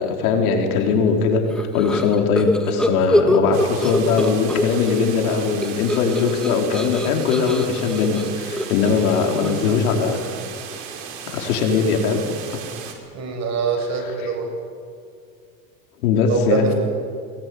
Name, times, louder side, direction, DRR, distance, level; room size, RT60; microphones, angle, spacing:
voice 1, 0.0-10.2 11.3-12.2 12.5-12.6 14.2-14.3 16.0-16.7, left 5 dB, 80° left, 2 dB, 5.0 m, -20 dB
sound 1, 1.5-5.0 5.3-9.8, left 1 dB, ahead, 2.0 m, -24 dB
sound 2, 3.5-12.9, right 7 dB, 65° right, 5.3 m, -36 dB
voice 2, 13.1-14.5 16.3-16.7, right 5 dB, 40° right, 3 dB, 7.7 m, -24 dB
23.0 x 22.0 x 9.9 m, 2.2 s
supercardioid pair, 130°, 43 cm